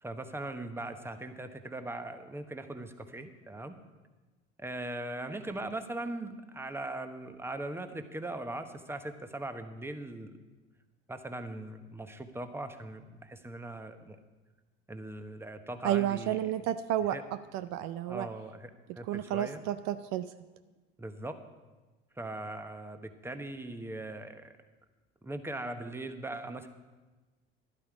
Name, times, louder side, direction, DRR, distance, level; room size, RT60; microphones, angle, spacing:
voice 1, 0.0-3.8 4.6-10.3 11.1-14.2 14.9-16.4 17.1-17.2 18.1-19.6 21.0-21.4 22.2-24.5 25.2-26.7, right 2 dB, 10° right, 8 dB, 1.1 m, -40 dB
voice 2, 15.8-17.2 17.5-18.3 19.1-20.3, right 12 dB, 60° right, 12 dB, 0.5 m, -31 dB
12.0 x 11.0 x 4.9 m, 1.2 s
hypercardioid pair, 70°, 32 cm